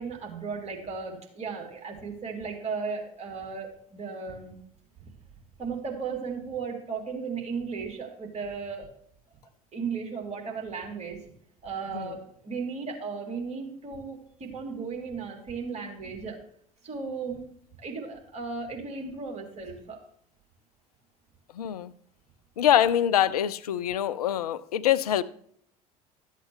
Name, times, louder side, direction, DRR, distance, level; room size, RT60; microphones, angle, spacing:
voice 1, 0.0-4.6 5.6-8.9 9.7-11.2 11.6-16.4 16.8-17.4 17.8-20.0, right 5 dB, 35° right, 3.1 m, -35 dB
voice 2, 21.5-21.9 22.6-25.2, left 10 dB, 80° left, 0.5 m, -24 dB
13.0 x 8.2 x 3.2 m
figure-of-eight pair, 65°, 19 cm